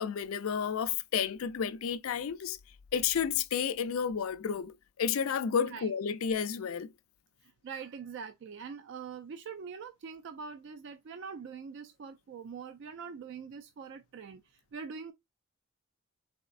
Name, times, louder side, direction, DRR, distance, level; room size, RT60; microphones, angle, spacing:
voice 1, 0.0-2.6 2.9-6.9, left 7 dB, 80° left, 0.4 m, -31 dB
voice 2, 7.4-15.1, right 6 dB, 60° right, 0.3 m, -43 dB
4.2 x 3.3 x 2.4 m
head